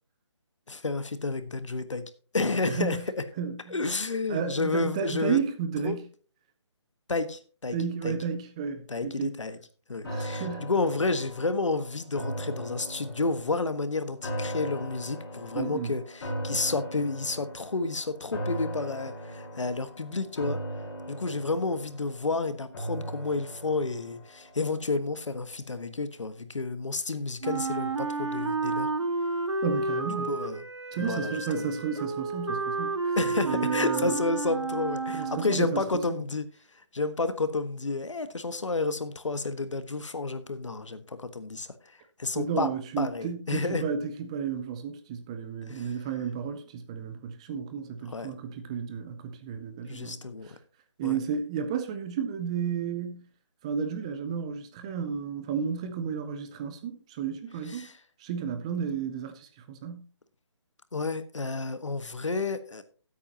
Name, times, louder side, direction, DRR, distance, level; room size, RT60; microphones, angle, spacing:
voice 1, 0.7-2.0 2.3-3.0 3.7-5.4 5.8-6.0 7.1-7.8 8.0-8.2 8.9-9.6 9.9-20.6 21.1-28.9 30.3-30.6 31.0-31.7 33.2-36.5 36.9-42.7 43.0-43.8 45.7-45.9 48.1-48.3 49.9-50.5 51.0-51.2 57.8-57.9 60.9-62.8, left 3 dB, 85° left, 1.4 m, -30 dB
voice 2, 2.7-3.0 3.4-3.8 4.3-6.0 7.7-9.3 10.0-10.7 15.5-16.0 29.6-30.3 30.9-33.2 33.4-34.2 35.1-36.2 42.3-50.5 51.0-53.3 53.6-57.9 58.2-60.0, right 7 dB, 10° right, 0.5 m, -32 dB
sound 1, 10.0-25.3 25.7-25.8, equal, 45° left, 4.8 m, -39 dB
Wind instrument woodwind instrument, 27.4-35.7, right 3 dB, 75° right, 1.8 m, -31 dB
14.5 x 8.4 x 2.9 m
hypercardioid pair, 160°, 15 cm